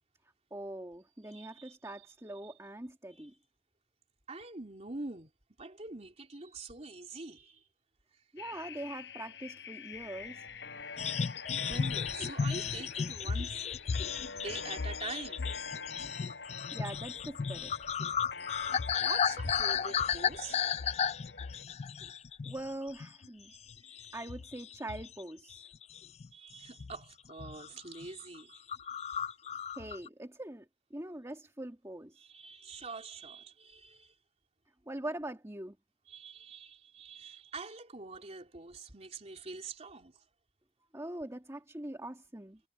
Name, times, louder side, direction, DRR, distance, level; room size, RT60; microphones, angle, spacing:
voice 1, 0.5-3.3 8.3-10.5 16.7-17.7 22.5-23.5 24.1-25.7 29.7-30.7 30.9-32.2 34.9-35.8 40.9-42.6, right 1 dB, 15° right, 2.3 m, -42 dB
voice 2, 1.2-2.0 2.4-2.5 3.1-3.3 4.3-5.3 5.6-7.7 11.6-13.6 14.1-15.5 16.4-16.5 19.0-20.6 21.9-22.1 23.4-24.4 26.3-29.0 32.2-34.1 36.1-40.2, right 3 dB, 35° right, 3.5 m, -45 dB
sound 1, 8.4-21.6, left 4 dB, 70° left, 5.3 m, -46 dB
sound 2, 11.0-22.7 23.0-23.3 23.7-25.2 25.5-26.3 26.8-27.0 27.3-27.7 28.0-28.1 28.3-28.4 28.7-30.1, left 7 dB, 35° left, 0.3 m, -34 dB
head